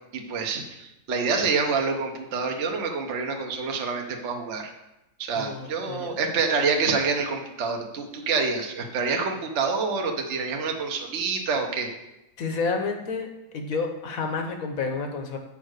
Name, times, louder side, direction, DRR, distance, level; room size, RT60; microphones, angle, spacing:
voice 1, 0.1-4.7 5.2-11.9, right 4 dB, 50° right, 2 dB, 0.8 m, -27 dB
voice 2, 5.4-6.1 12.4-13.3 13.5-15.4, left 4 dB, 55° left, 4 dB, 1.0 m, -30 dB
7.3 x 5.1 x 6.5 m, 0.92 s
omnidirectional pair, 2.3 m